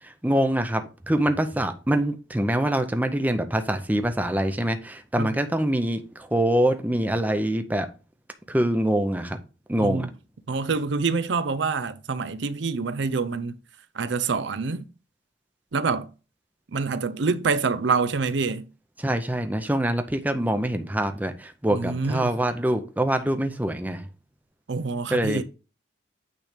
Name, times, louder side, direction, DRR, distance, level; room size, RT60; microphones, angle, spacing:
voice 1, 0.0-7.9 8.5-9.4 9.7-10.1 19.0-24.1 25.1-25.4, right 1 dB, 10° right, 0.6 m, -25 dB
voice 2, 10.5-13.6 13.9-14.8 15.7-16.1 16.7-18.6 21.7-22.3 24.7-25.4, right 4 dB, 65° right, 0.5 m, -26 dB
9.1 x 3.3 x 5.0 m
head